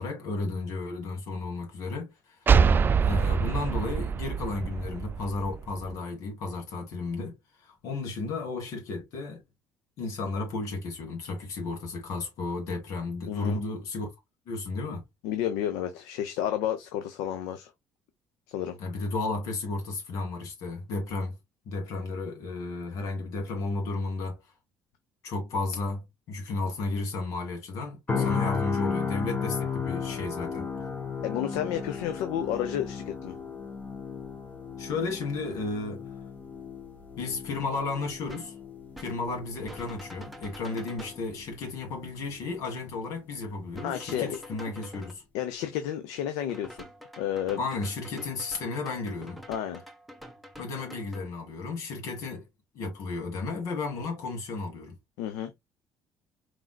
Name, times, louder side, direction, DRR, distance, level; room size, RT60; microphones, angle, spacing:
voice 1, 0.0-2.4 3.0-7.3 7.6-9.4 10.0-14.1 14.5-15.0 18.8-21.4 21.7-24.4 25.2-30.7 34.8-36.1 37.2-38.6 39.0-45.2 47.6-49.4 50.6-52.4 52.7-54.9, left 3 dB, 75° left, 2.9 m, -33 dB
sound 1, 2.5-6.0, right 6 dB, 35° right, 0.4 m, -25 dB
voice 2, 13.2-13.6 15.2-17.7 18.5-18.8 28.2-28.4 31.2-33.4 43.8-44.4 45.3-46.9 47.2-47.6 49.5-49.8 55.2-55.5, left 10 dB, 90° left, 0.7 m, -31 dB
sound 2, 28.1-42.1 42.4-42.6, left 5 dB, 30° left, 1.5 m, -35 dB
sound 3, 38.3-38.5 39.0-39.2 39.7-41.2 43.7-45.1 46.5-51.2, equal, ahead, 1.3 m, -46 dB
4.7 x 3.9 x 2.3 m
supercardioid pair, 80°, 6 cm